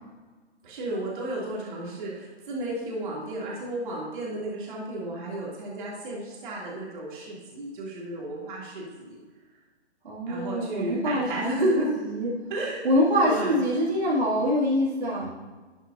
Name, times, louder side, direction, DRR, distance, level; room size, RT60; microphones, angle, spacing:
voice 1, 0.6-9.2 10.3-12.0 12.5-12.9 13.2-13.6, right 1 dB, 45° right, -4 dB, 2.7 m, -32 dB
voice 2, 10.0-11.7 12.0-12.3 12.8-15.3, equal, 65° right, -6 dB, 2.6 m, -25 dB
12.0 x 7.2 x 2.7 m, 1.3 s
figure-of-eight pair, 135°, 34 cm